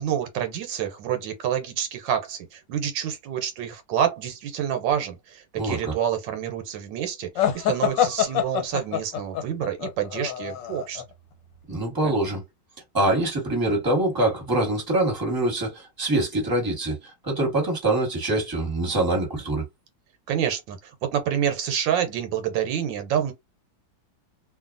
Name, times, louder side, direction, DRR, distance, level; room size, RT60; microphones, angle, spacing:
voice 1, 0.0-11.0 12.0-12.1 20.3-23.3, right 9 dB, 85° right, 1.4 m, -28 dB
voice 2, 5.6-5.9 11.7-12.4 12.9-19.6, right 2 dB, 15° right, 1.3 m, -24 dB
sound 1, 7.4-11.0, left 10 dB, 80° left, 1.4 m, -25 dB
2.7 x 2.6 x 2.4 m
omnidirectional pair, 2.0 m